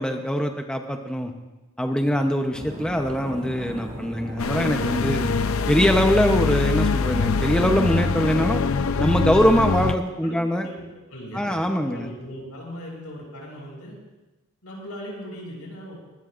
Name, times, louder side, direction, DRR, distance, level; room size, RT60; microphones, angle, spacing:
voice 1, 0.0-1.3 1.8-5.3 5.7-8.6 9.0-10.7 11.3-12.1, equal, 5° left, 3 dB, 0.7 m, -22 dB
sound 1, 2.5-7.7, right 1 dB, 30° right, 2.6 m, -38 dB
sound 2, 4.4-9.9, left 4 dB, 70° left, 0.6 m, -23 dB
voice 2, 10.6-14.0 14.6-16.0, equal, 90° left, -2 dB, 6.8 m, -39 dB
23.0 x 20.5 x 2.5 m, 1.1 s
head